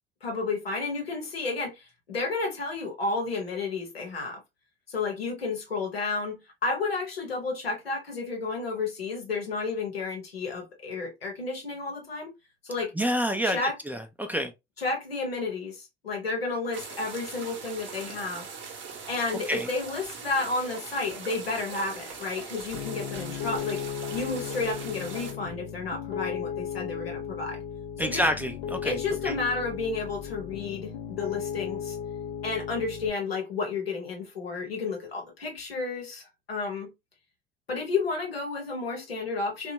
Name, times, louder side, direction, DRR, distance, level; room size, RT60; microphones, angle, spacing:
voice 1, 0.2-4.4 4.9-12.3 12.6-12.9 13.4-13.7 14.8-18.5 19.1-23.8 24.1-27.6 28.0-28.2 28.8-32.0 32.4-36.9 37.7-39.7, left 3 dB, 85° left, 0.9 m, -31 dB
voice 2, 12.9-13.6 13.9-14.5 19.5-19.7 28.0-29.0 29.2-29.4, equal, 5° right, 0.4 m, -27 dB
sound 1, 16.7-25.3, right 5 dB, 40° right, 0.9 m, -41 dB
Piano, 22.7-33.1, left 8 dB, 65° left, 0.6 m, -36 dB
2.8 x 2.3 x 2.7 m
figure-of-eight pair, 60°, 29 cm